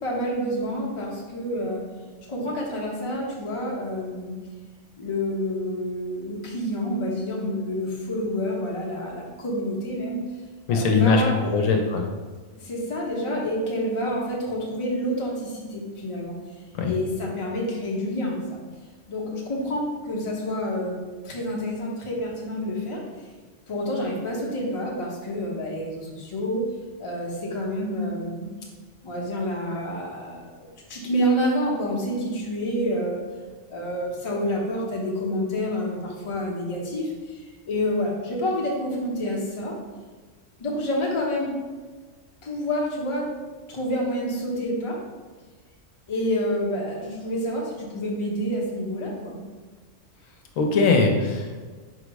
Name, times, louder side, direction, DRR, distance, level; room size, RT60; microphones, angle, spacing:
voice 1, 0.0-1.8 2.3-4.3 5.0-10.2 10.7-11.7 12.6-16.4 16.9-18.6 19.1-21.0 21.2-23.0 23.7-26.6 27.0-28.5 29.0-33.2 33.7-39.7 40.6-41.6 42.4-43.3 43.7-45.0 46.1-49.4, equal, 30° left, -3 dB, 0.6 m, -28 dB
voice 2, 10.7-11.2 11.5-12.1 16.7-16.9 50.6-51.6, left 4 dB, 80° left, 2 dB, 1.0 m, -21 dB
4.6 x 2.0 x 4.6 m, 1.4 s
omnidirectional pair, 1.4 m